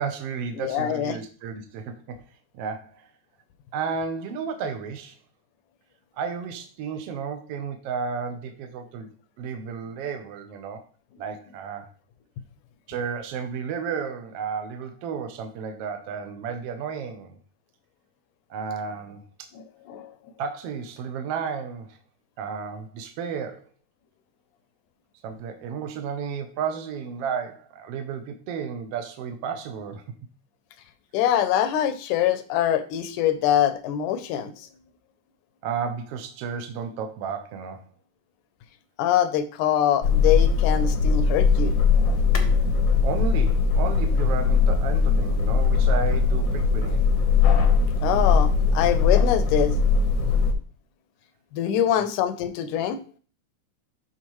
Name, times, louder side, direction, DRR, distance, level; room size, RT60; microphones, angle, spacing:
voice 1, 0.0-2.2 2.5-3.1 3.7-5.2 6.2-9.1 9.4-10.8 11.2-11.9 12.9-17.4 18.5-19.5 20.4-22.0 22.4-23.6 25.2-30.0 35.6-37.8 42.5-42.6 43.0-47.0, right 6 dB, 70° right, 6 dB, 1.5 m, -32 dB
voice 2, 0.6-1.2 19.6-20.1 31.1-34.5 39.0-41.9 48.0-49.7 51.5-53.0, left 10 dB, 85° left, 11 dB, 2.2 m, -24 dB
sound 1, 40.0-50.5, left 5 dB, 65° left, 1.2 m, -20 dB
12.0 x 4.1 x 3.1 m, 0.40 s
omnidirectional pair, 3.5 m